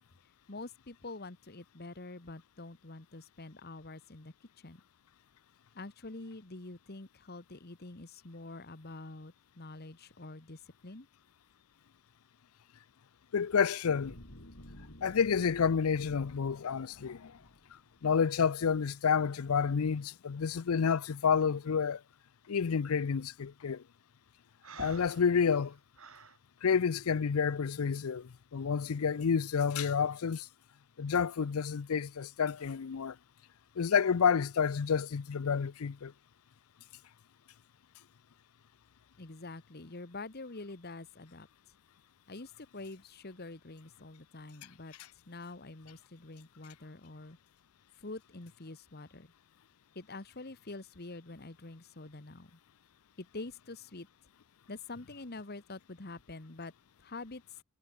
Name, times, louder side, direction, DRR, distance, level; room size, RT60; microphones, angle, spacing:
voice 1, 0.5-4.8 5.7-11.1 39.2-41.5 42.3-44.9 45.3-47.4 48.0-49.3 49.9-52.6 53.2-54.1 54.7-56.7 57.0-57.6, left 2 dB, 45° left, 1.4 m, -46 dB
voice 2, 13.3-14.2 15.0-17.4 18.0-22.0 22.5-23.8 24.8-25.8 26.6-30.5 31.0-33.2 33.8-36.1, left 6 dB, 85° left, 0.5 m, -29 dB
sound 1, 13.9-18.4 18.9-19.0, left 1 dB, 65° left, 4.9 m, -54 dB
Breathing, 24.6-26.4, right 3 dB, 75° right, 4.7 m, -49 dB
head